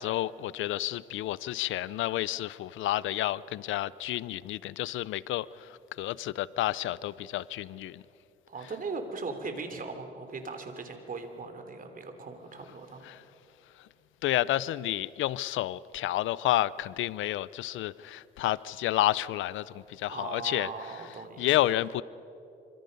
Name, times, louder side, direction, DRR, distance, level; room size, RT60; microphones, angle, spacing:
voice 1, 0.0-8.0 13.0-13.2 14.2-20.7 21.4-22.0, left 14 dB, 80° left, 20 dB, 0.5 m, -30 dB
voice 2, 8.5-13.1 20.1-21.6, right 4 dB, 45° right, 6 dB, 3.2 m, -39 dB
26.5 x 24.5 x 5.3 m, 2.8 s
cardioid pair, 90°, 20 cm